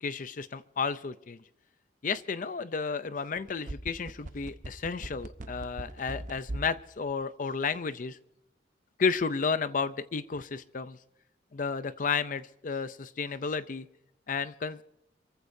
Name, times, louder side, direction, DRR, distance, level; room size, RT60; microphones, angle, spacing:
voice 1, 0.0-1.4 2.0-8.2 9.0-11.0 11.5-13.9 14.3-14.8, left 5 dB, 45° left, 13 dB, 0.5 m, -32 dB
sound 1, 3.4-6.8 7.1-7.2, right 1 dB, 45° right, 0.8 m, -39 dB
28.0 x 15.0 x 2.7 m, 0.86 s
head